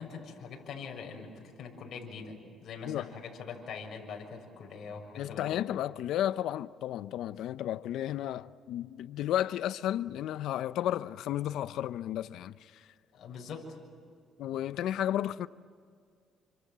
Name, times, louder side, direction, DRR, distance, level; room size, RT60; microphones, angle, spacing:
voice 1, 0.0-2.4 2.6-5.6 13.1-13.8, left 5 dB, 60° left, 6.9 m, -43 dB
voice 2, 5.2-12.9 14.4-15.5, left 12 dB, 80° left, 0.8 m, -33 dB
29.5 x 26.0 x 7.6 m
cardioid pair, 110°, 0 cm